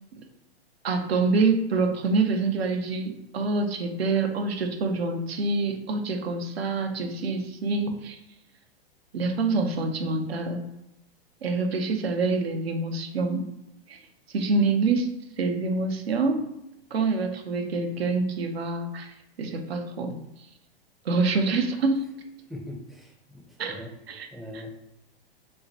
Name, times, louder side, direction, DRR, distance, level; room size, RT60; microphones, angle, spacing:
voice 1, 0.8-8.2 9.1-10.6 11.4-13.5 13.9-14.0 14.3-15.1 15.4-16.5 16.9-20.2 21.0-22.1 23.6-23.8 24.1-24.3, right 3 dB, 90° right, 6 dB, 0.7 m, -26 dB
voice 2, 22.5-23.9 24.3-24.9, left 1 dB, ahead, 0 dB, 0.4 m, -41 dB
5.6 x 2.2 x 2.7 m, 0.84 s
hypercardioid pair, 125°, 30 cm